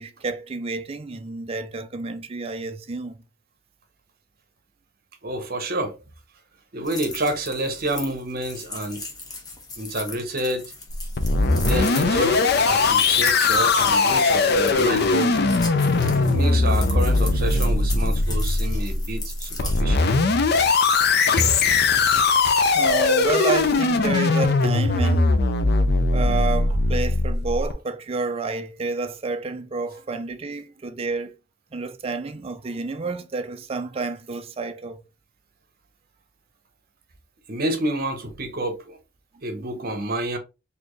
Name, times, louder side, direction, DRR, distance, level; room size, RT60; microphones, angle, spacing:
voice 1, 0.0-3.2 22.7-25.4 26.1-31.3 31.7-35.0 39.6-39.7, right 3 dB, 30° right, 0.4 m, -29 dB
voice 2, 5.2-6.0 6.7-9.0 9.8-10.7 11.6-15.5 16.2-20.4 21.4-21.6 37.5-39.0 39.4-40.4, right 1 dB, 50° right, 0.9 m, -28 dB
sound 1, 6.8-19.8, left 3 dB, 20° left, 1.0 m, -38 dB
sound 2, 10.9-27.7, left 3 dB, 55° left, 0.5 m, -20 dB
4.2 x 2.7 x 3.1 m
head